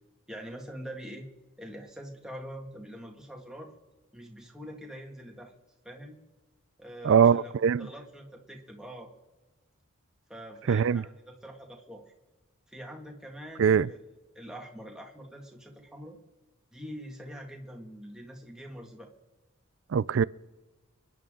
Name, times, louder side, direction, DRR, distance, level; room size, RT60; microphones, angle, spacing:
voice 1, 0.3-1.3 1.6-3.7 4.1-5.5 5.8-6.2 6.8-7.5 7.8-9.1 10.3-12.0 12.7-14.0 14.4-16.2 16.7-19.1, equal, 5° right, 1.9 m, -44 dB
voice 2, 7.0-7.9 10.7-11.0 13.6-13.9 19.9-20.2, right 7 dB, 60° right, 0.4 m, -22 dB
29.0 x 10.5 x 3.8 m
head